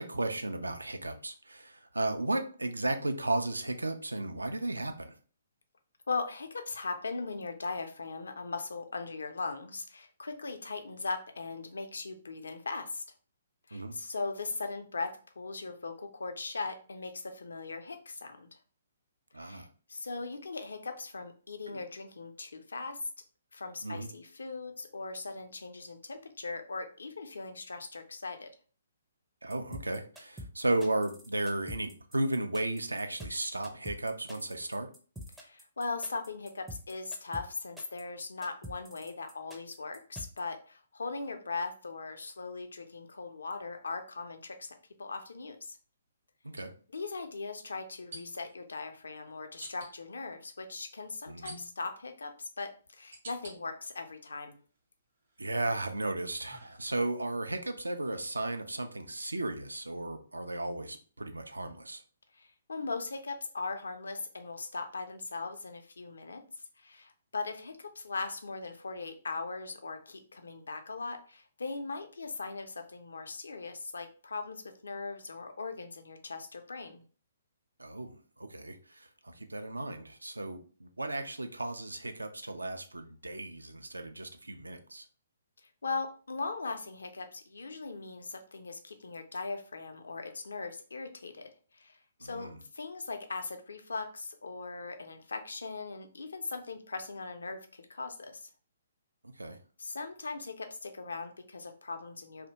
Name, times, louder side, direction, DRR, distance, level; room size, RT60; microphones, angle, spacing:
voice 1, 0.0-5.1 13.7-14.0 19.3-19.7 23.8-24.1 29.4-34.9 46.4-46.7 51.3-51.5 55.4-62.0 77.8-85.1 92.2-92.6 99.2-99.6, right 2 dB, 80° right, 6 dB, 0.3 m, -35 dB
voice 2, 6.1-13.0 13.7-18.5 19.4-23.0 23.5-28.5 35.4-45.8 46.9-54.6 62.3-66.4 66.8-77.0 85.8-98.5 99.8-102.5, left 3 dB, 65° left, 6 dB, 0.4 m, -39 dB
sound 1, 29.5-40.4, equal, 5° right, 0.4 m, -46 dB
sound 2, 43.6-43.8 46.5-46.6 48.1-48.5 49.6-49.9 51.4-52.0 52.6-53.6 54.1-54.8 55.2-57.2, right 2 dB, 55° right, 0.8 m, -50 dB
2.6 x 2.0 x 2.8 m, 0.39 s
figure-of-eight pair, 130°, 0 cm